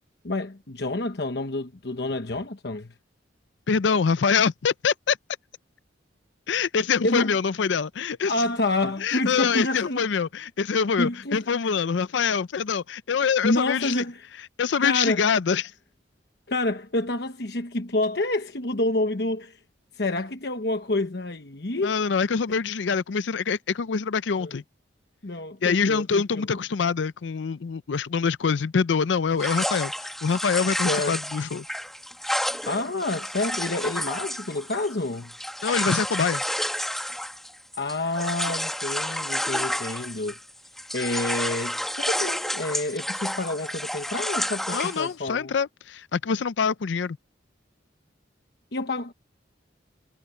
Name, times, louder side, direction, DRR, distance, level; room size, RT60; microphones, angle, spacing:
voice 1, 0.2-2.9 7.0-7.3 8.2-10.0 11.0-11.7 13.4-14.2 14.8-15.2 16.5-19.6 19.9-21.9 24.4-24.6 25.2-26.6 30.8-31.2 32.4-35.3 37.8-40.4 40.9-45.5 48.7-49.1, left 2 dB, 60° left, 1.1 m, -28 dB
voice 2, 3.7-5.2 6.5-8.3 9.0-14.0 14.6-15.7 21.8-24.6 25.6-31.7 35.6-36.4 44.7-47.2, left 6 dB, 80° left, 0.5 m, -25 dB
sound 1, 29.4-40.5 40.8-45.1, equal, ahead, 1.4 m, -30 dB
head